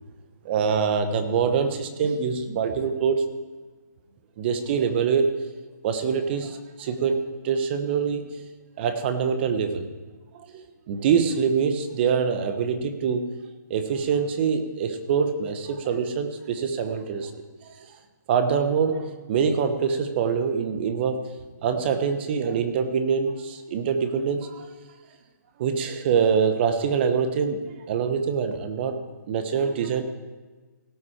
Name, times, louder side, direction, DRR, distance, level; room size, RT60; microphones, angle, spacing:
voice 1, 0.4-3.2 4.4-5.3 5.8-8.3 8.8-9.9 10.5-13.3 13.7-17.3 17.6-17.7 18.3-21.2 21.6-24.6 25.6-28.9 29.3-30.0, right 6 dB, 35° right, 9 dB, 1.0 m, -24 dB
17.0 x 6.1 x 4.9 m, 1.3 s
hypercardioid pair, 150°, 10 cm